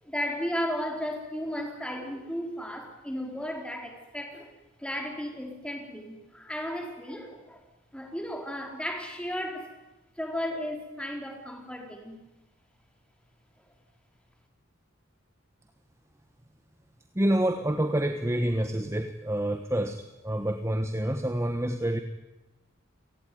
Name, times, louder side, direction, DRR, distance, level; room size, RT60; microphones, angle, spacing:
voice 1, 0.0-4.5 4.8-7.6 7.9-9.8 10.2-12.2, equal, 5° left, 3 dB, 4.4 m, -34 dB
voice 2, 17.1-22.0, right 1 dB, 15° right, 7 dB, 1.3 m, -27 dB
29.0 x 19.0 x 9.6 m, 1.0 s
head